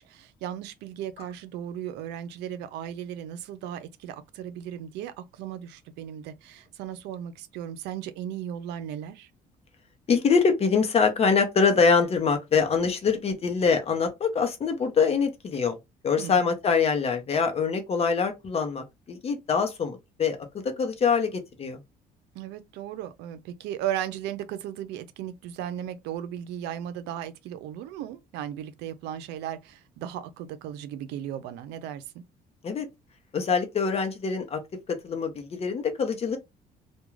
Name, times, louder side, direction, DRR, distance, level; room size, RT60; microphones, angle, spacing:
voice 1, 0.0-9.3 16.2-16.5 22.3-32.2, right 10 dB, 90° right, 0.4 m, -36 dB
voice 2, 10.1-15.8 16.0-20.4 20.6-21.8 32.6-32.9 33.3-34.6 34.9-36.4, left 5 dB, 35° left, 0.7 m, -24 dB
2.3 x 2.2 x 3.0 m
cardioid pair, 110°, 17 cm